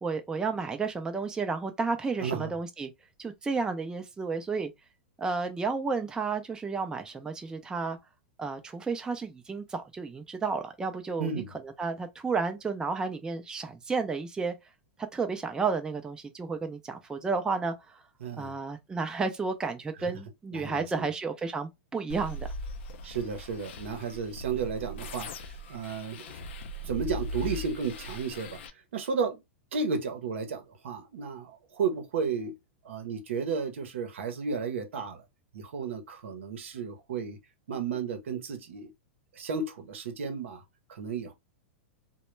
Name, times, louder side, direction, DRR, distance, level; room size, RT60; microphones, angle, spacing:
voice 1, 0.0-2.9 3.2-4.7 5.2-8.0 8.4-11.3 11.6-14.5 15.1-18.0 18.4-22.5, right 4 dB, 10° right, 0.4 m, -32 dB
voice 2, 2.2-2.5 11.2-11.5 18.2-18.6 20.0-20.1 20.5-21.1 23.0-25.3 25.7-26.3 26.8-28.6 28.9-29.4 29.7-32.5 32.8-35.2 35.5-37.4 37.7-38.9 39.3-40.6 40.9-41.3, right 5 dB, 80° right, 0.7 m, -33 dB
sound 1, 22.1-28.7, equal, 70° left, 0.4 m, -39 dB
2.1 x 2.1 x 3.0 m
hypercardioid pair, 115°, 7 cm